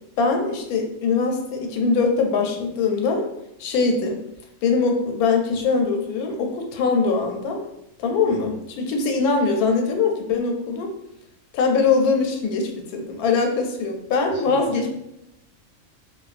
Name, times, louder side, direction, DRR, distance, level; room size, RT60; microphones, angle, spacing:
voice 1, 0.2-3.3 3.6-4.2 4.6-7.6 8.0-10.9 11.5-14.9, left 4 dB, 85° left, 3 dB, 1.1 m, -22 dB
voice 2, 8.3-8.6 14.2-14.9, equal, 45° right, -7 dB, 1.3 m, -39 dB
3.5 x 2.2 x 2.4 m, 0.85 s
omnidirectional pair, 1.5 m